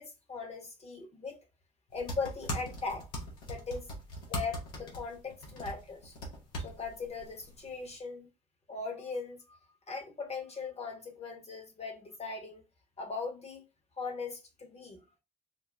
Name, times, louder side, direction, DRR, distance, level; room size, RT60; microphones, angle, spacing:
voice 1, 0.0-1.4 1.9-3.1 3.4-3.9 4.3-6.2 6.6-8.3 8.7-9.6 9.9-12.6 13.0-13.6 14.0-15.0, left 4 dB, 30° left, 1.2 m, -39 dB
sound 1, 1.9-8.0, equal, 75° left, 1.0 m, -41 dB
3.8 x 2.2 x 2.6 m
figure-of-eight pair, 40°, 20 cm